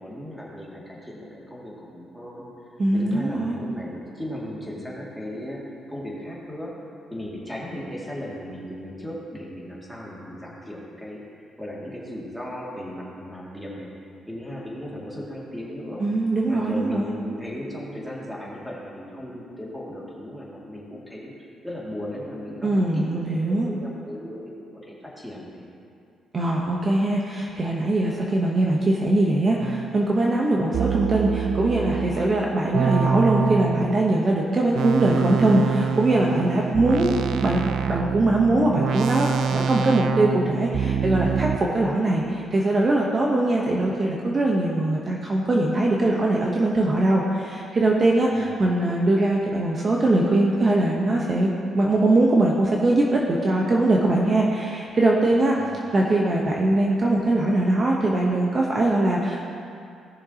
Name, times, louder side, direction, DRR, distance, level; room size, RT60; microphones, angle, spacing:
voice 1, 0.0-2.5 2.9-6.7 7.1-11.2 11.6-13.9 14.3-16.1 16.5-25.7 30.5-30.8 41.8-42.0 43.7-44.0 48.3-48.7 55.6-55.8, equal, ahead, -5 dB, 2.3 m, -36 dB
voice 2, 2.8-3.6 16.0-17.1 22.6-23.7 26.3-37.1 37.4-42.2 42.5-55.6 55.9-59.5, right 2 dB, 35° right, -2 dB, 1.0 m, -21 dB
sound 1, 29.6-29.9 30.7-34.1 34.7-41.6, right 6 dB, 70° right, 0.4 m, -26 dB
17.0 x 6.6 x 2.9 m, 2.5 s
cardioid pair, 90°, 0 cm